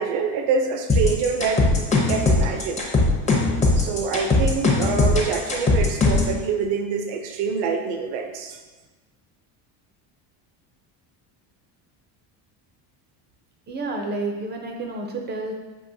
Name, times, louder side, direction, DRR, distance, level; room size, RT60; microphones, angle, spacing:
voice 1, 0.0-2.8 3.8-8.6, right 5 dB, 60° right, 4 dB, 0.7 m, -26 dB
sound 1, 0.9-6.3, left 2 dB, 15° left, 0.7 m, -19 dB
voice 2, 13.7-15.5, right 2 dB, 25° right, 2 dB, 0.5 m, -30 dB
7.0 x 2.9 x 2.6 m, 1.2 s
cardioid pair, 145°, 46 cm